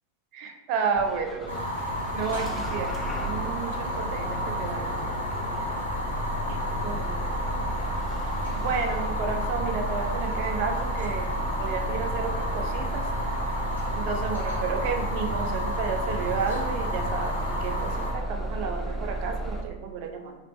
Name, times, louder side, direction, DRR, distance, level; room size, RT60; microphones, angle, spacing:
voice 1, 0.3-1.6 2.1-5.2 6.5-7.3 8.5-13.1 13.9-20.4, right 5 dB, 45° right, 5 dB, 0.5 m, -32 dB
Bus / Engine starting, 0.9-19.6, right 1 dB, 5° left, 0.5 m, -33 dB
Fire, 1.5-18.1, left 1 dB, 80° left, 1.2 m, -32 dB
4.0 x 3.1 x 3.2 m, 1.1 s
figure-of-eight pair, 90°, 0 cm